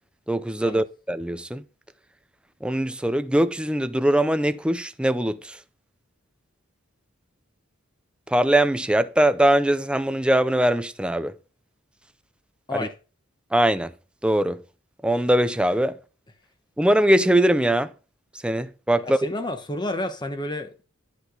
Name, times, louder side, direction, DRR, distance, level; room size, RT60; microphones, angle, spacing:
voice 1, 0.3-1.6 2.6-5.6 8.3-11.4 12.7-12.9 13.5-13.9 14.2-14.6 15.0-16.0 16.8-17.9 18.4-19.2, right 1 dB, 5° right, 0.4 m, -21 dB
voice 2, 19.0-20.8, left 1 dB, 20° left, 1.0 m, -30 dB
11.5 x 5.4 x 3.8 m
head